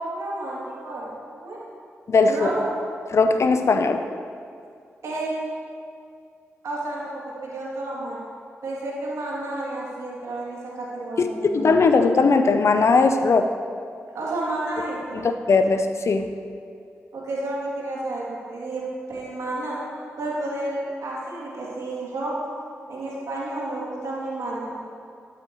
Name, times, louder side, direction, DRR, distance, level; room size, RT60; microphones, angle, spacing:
voice 1, 0.0-1.6 2.3-2.6 5.0-5.3 6.6-7.1 7.4-8.2 8.6-11.7 14.1-15.3 17.1-18.8 19.1-19.8 20.2-22.3 22.9-24.7, right 2 dB, 75° right, -6 dB, 2.6 m, -31 dB
voice 2, 2.1-2.5 3.1-4.1 11.2-11.3 11.5-13.5 15.1-16.3, left 4 dB, 60° left, 7 dB, 0.6 m, -19 dB
12.5 x 8.4 x 3.1 m, 2.4 s
supercardioid pair, 40°, 5 cm